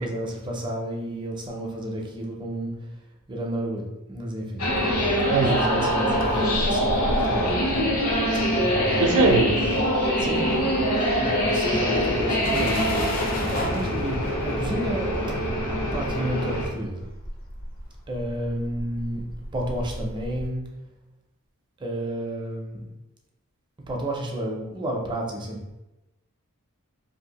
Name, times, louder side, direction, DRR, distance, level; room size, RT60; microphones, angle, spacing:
voice 1, 0.0-2.7 3.3-4.6 5.2-7.5 8.3-9.2 10.2-10.6 11.2-13.0 13.5-15.2 15.9-17.1 18.1-19.3 19.5-20.6 21.8-22.8 23.9-25.6, right 1 dB, 20° right, 0 dB, 0.4 m, -31 dB
sound 1, 4.6-16.7, equal, 80° left, 0.7 m, -24 dB
voice 2, 5.3-5.9 9.0-9.6, right 3 dB, 85° right, 4 dB, 0.4 m, -21 dB
sound 2, 6.1-9.5 9.7-20.5, equal, 40° left, 0.5 m, -35 dB
2.6 x 2.3 x 2.8 m, 0.98 s
head